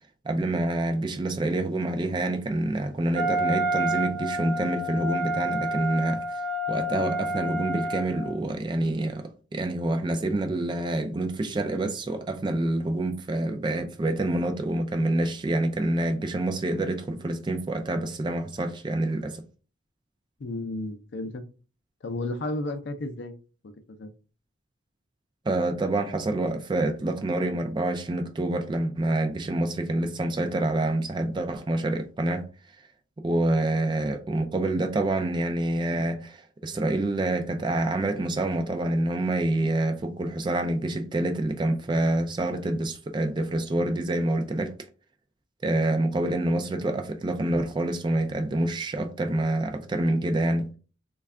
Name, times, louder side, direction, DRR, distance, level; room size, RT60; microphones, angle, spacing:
voice 1, 0.2-6.2 6.7-19.4 25.5-32.4 33.2-44.7 45.6-50.7, right 1 dB, 25° right, 0.3 m, -27 dB
Wind instrument woodwind instrument, 3.2-8.4, right 1 dB, 55° right, 0.7 m, -29 dB
voice 2, 20.4-21.4 22.0-23.4 23.6-24.1, left 2 dB, 55° left, 0.5 m, -33 dB
3.2 x 2.3 x 3.5 m
head